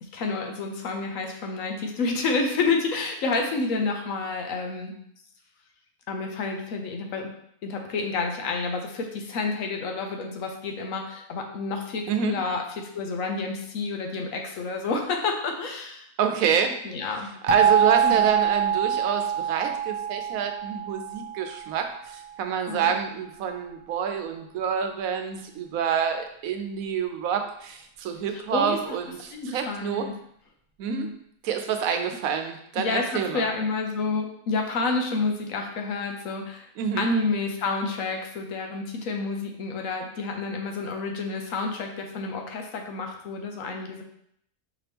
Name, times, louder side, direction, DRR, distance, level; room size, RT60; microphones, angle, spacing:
voice 1, 0.0-5.0 6.1-7.4 7.6-16.1 16.8-17.3 18.0-18.3 22.7-22.9 28.3-29.0 29.3-30.1 30.9-31.1 32.8-36.7 37.0-44.0, left 3 dB, 75° left, 3 dB, 1.1 m, -29 dB
voice 2, 16.2-16.7 17.4-30.1 30.8-31.1 31.4-33.5 36.8-37.1, right 7 dB, 90° right, 6 dB, 1.1 m, -27 dB
sound 1, 17.5-22.2, right 8 dB, 75° right, 0.3 m, -25 dB
5.0 x 2.9 x 3.4 m, 0.70 s
omnidirectional pair, 1.4 m